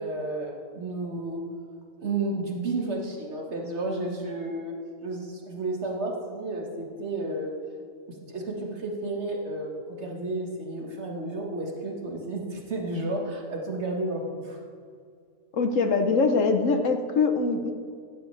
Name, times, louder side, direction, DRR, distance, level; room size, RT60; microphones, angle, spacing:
voice 1, 0.0-1.4 2.0-4.7 5.0-7.5 8.1-14.6, right 2 dB, 55° right, 0 dB, 1.8 m, -32 dB
voice 2, 15.5-17.7, left 4 dB, 65° left, 6 dB, 1.2 m, -23 dB
15.0 x 9.9 x 3.3 m, 2.2 s
omnidirectional pair, 1.4 m